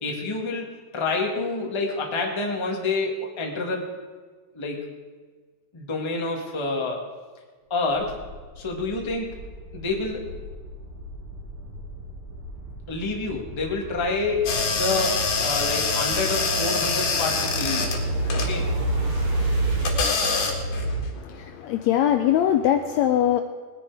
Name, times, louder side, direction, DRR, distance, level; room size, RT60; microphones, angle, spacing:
voice 1, 0.0-3.9 4.5-4.9 5.7-7.0 7.7-8.2 8.6-9.3 9.7-10.3 12.9-17.9 18.3-18.7, left 3 dB, 20° left, 0 dB, 0.8 m, -28 dB
sound 1, 7.8-20.0, right 1 dB, 60° right, 3.7 m, -41 dB
sound 2, 14.5-21.1, left 2 dB, 60° left, 2.9 m, -24 dB
voice 2, 21.1-23.4, left 11 dB, 85° left, 7 dB, 1.6 m, -22 dB
19.5 x 10.0 x 4.8 m, 1.4 s
omnidirectional pair, 3.7 m